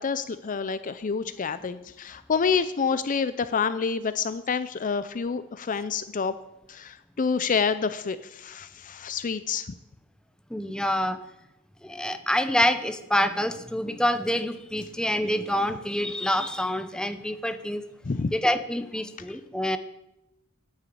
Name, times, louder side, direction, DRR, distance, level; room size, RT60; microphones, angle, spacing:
voice 1, 0.0-6.3 6.7-9.7 18.0-18.3, left 5 dB, 40° left, 13 dB, 0.5 m, -28 dB
voice 2, 10.5-11.2 11.8-17.8 18.3-19.8, equal, 5° left, 9 dB, 0.7 m, -26 dB
9.9 x 9.0 x 8.5 m, 0.90 s
head